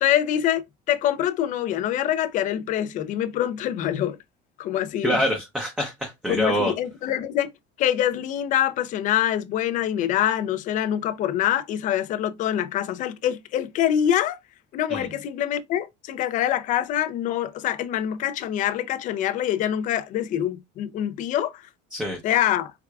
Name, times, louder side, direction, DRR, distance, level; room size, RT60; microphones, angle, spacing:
voice 1, 0.0-4.2 4.6-5.2 6.3-7.5 7.8-14.4 14.7-21.6 22.2-22.7, left 11 dB, 40° left, 0.5 m, -25 dB
voice 2, 5.0-6.7 14.9-15.1 21.9-22.2, equal, 5° right, 0.7 m, -25 dB
4.7 x 3.4 x 2.3 m
cardioid pair, 180°, 20 cm